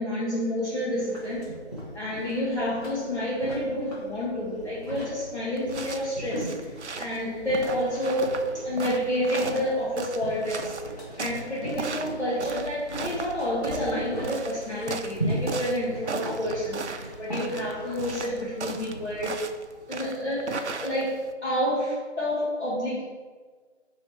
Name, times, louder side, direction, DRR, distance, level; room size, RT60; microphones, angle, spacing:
voice 1, 0.0-1.4 1.9-6.7 7.0-10.7 11.2-19.4 19.9-23.0, equal, 70° left, -8 dB, 1.3 m, -29 dB
sound 1, 0.9-19.1, right 1 dB, 35° left, 1.1 m, -38 dB
sound 2, 5.6-21.3, right 4 dB, 75° right, 0.5 m, -37 dB
4.7 x 3.1 x 3.2 m, 1.5 s
figure-of-eight pair, 180°, 35 cm